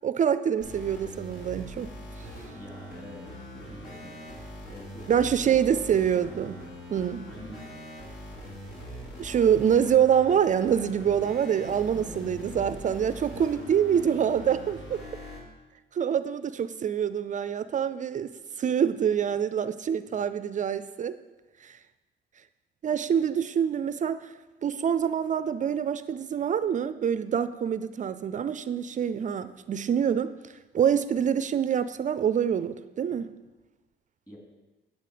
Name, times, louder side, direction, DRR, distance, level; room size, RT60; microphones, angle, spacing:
voice 1, 0.0-2.3 5.1-6.6 6.9-7.3 9.2-15.0 15.9-18.3 18.6-21.2 21.6-21.8 22.8-24.3 24.6-30.3 30.7-33.3, right 8 dB, 40° right, 13 dB, 0.4 m, -26 dB
sound 1, 0.6-15.4, equal, 70° left, 2.8 m, -42 dB
voice 2, 2.5-3.3 3.5-4.2 4.7-5.1 5.4-5.8 7.3-7.8 11.5-12.9 13.3-13.4 20.1-20.2 34.3-34.4, equal, 15° left, -2 dB, 3.5 m, -46 dB
9.0 x 8.2 x 5.0 m, 1.1 s
cardioid pair, 110°, 20 cm